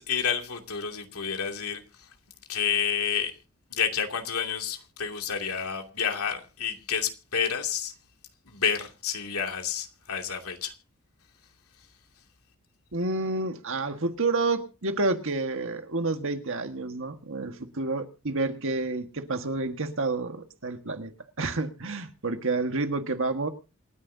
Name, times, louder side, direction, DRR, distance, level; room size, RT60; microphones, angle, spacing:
voice 1, 0.0-2.1 2.5-3.3 3.7-7.9 8.4-10.7 11.8-11.9, left 7 dB, 85° left, 2.7 m, -30 dB
voice 2, 12.9-21.1 21.4-23.5, right 3 dB, 65° right, 1.7 m, -29 dB
27.5 x 10.0 x 2.8 m
head